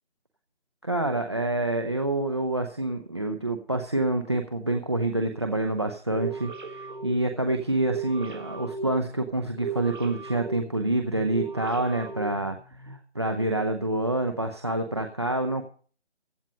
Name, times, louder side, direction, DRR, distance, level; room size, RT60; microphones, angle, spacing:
voice 1, 0.8-12.6 12.9-15.7, right 2 dB, 25° right, 4 dB, 0.7 m, -27 dB
sound 1, 6.1-13.0, right 4 dB, 45° right, 1.6 m, -37 dB
15.5 x 8.9 x 5.3 m, 0.41 s
figure-of-eight pair, 170°, 34 cm